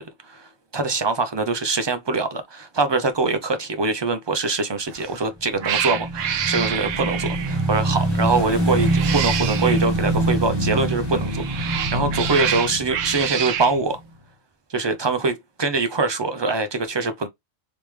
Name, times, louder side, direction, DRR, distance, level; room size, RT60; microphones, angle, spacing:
voice 1, 0.0-14.0 14.7-17.3, right 3 dB, 40° right, 0.3 m, -24 dB
Cat, 4.9-5.2 5.6-7.6 8.7-9.8 11.2-13.8, right 9 dB, 85° right, 1.0 m, -27 dB
Motorcycle / Engine, 5.5-14.1, right 1 dB, 20° right, 1.3 m, -25 dB
3.4 x 3.0 x 3.1 m
omnidirectional pair, 1.3 m